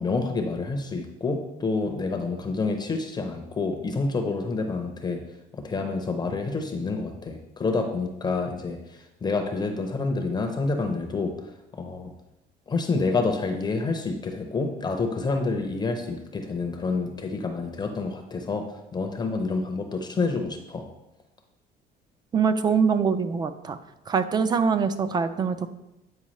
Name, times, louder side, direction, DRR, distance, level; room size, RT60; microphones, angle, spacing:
voice 1, 0.0-5.2 5.5-11.3 11.7-12.1 12.7-18.7 18.9-20.9, left 3 dB, 25° left, 4 dB, 0.6 m, -28 dB
voice 2, 22.3-23.8 24.1-25.7, right 6 dB, 25° right, 11 dB, 0.4 m, -23 dB
8.6 x 4.5 x 3.1 m, 0.92 s
cardioid pair, 135°, 17 cm